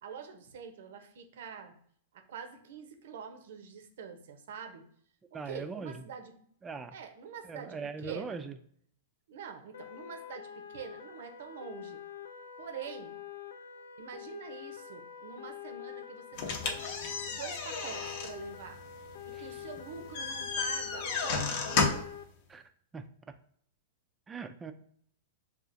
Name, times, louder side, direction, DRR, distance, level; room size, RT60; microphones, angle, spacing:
voice 1, 0.0-1.7 2.1-4.8 5.4-6.3 6.9-8.4 9.3-12.0 12.6-13.2 14.0-16.8 17.3-18.8 19.2-22.1, right 6 dB, 70° right, 6 dB, 0.6 m, -45 dB
voice 2, 5.3-6.0 6.6-7.0 7.4-8.6 19.3-19.6 22.5-23.1 24.3-24.7, right 5 dB, 15° right, 9 dB, 0.4 m, -41 dB
sound 1, 9.7-22.2, left 9 dB, 80° left, 0.3 m, -46 dB
sound 2, 16.4-22.2, left 4 dB, 55° left, 0.7 m, -33 dB
6.7 x 2.4 x 2.5 m, 0.62 s
hypercardioid pair, 125°, 0 cm